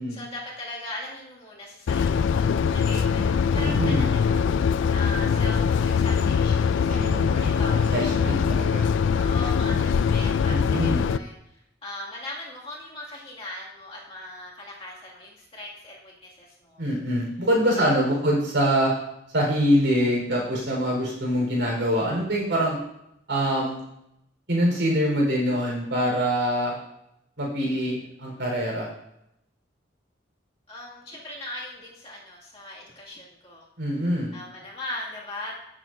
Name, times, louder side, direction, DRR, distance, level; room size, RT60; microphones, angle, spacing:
voice 1, 0.1-8.4 9.1-16.8 17.8-17.9 18.1-18.2 30.7-33.7 34.3-35.5, left 1 dB, 30° left, -5 dB, 2.2 m, -39 dB
sound 1, 1.9-11.2, left 6 dB, 80° left, 0.3 m, -22 dB
voice 2, 3.5-4.1 6.9-8.8 10.4-11.0 16.8-18.9 19.3-22.8 23.3-23.8 24.5-26.7 27.4-28.9 33.8-34.3, equal, 65° right, -2 dB, 4.3 m, -24 dB
17.0 x 7.7 x 2.6 m, 0.81 s
head